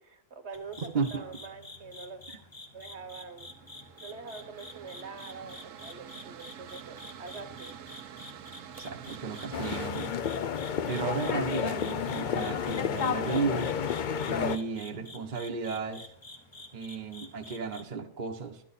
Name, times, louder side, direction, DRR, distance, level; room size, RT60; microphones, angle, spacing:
voice 1, 0.0-2.2 2.7-3.5 4.0-7.8, right 4 dB, 60° right, 8 dB, 1.3 m, -45 dB
sound 1, 0.5-17.8, left 2 dB, 20° left, 1.0 m, -49 dB
Mechanical fan, 2.9-9.9, right 10 dB, 80° right, 1.0 m, -48 dB
voice 2, 8.8-10.1 10.9-13.7 14.3-16.1 16.7-18.6, right 5 dB, 40° right, 2 dB, 1.0 m, -34 dB
sound 2, 9.5-14.6, left 7 dB, 55° left, 0.5 m, -31 dB
12.0 x 9.8 x 4.1 m, 0.66 s
omnidirectional pair, 1.3 m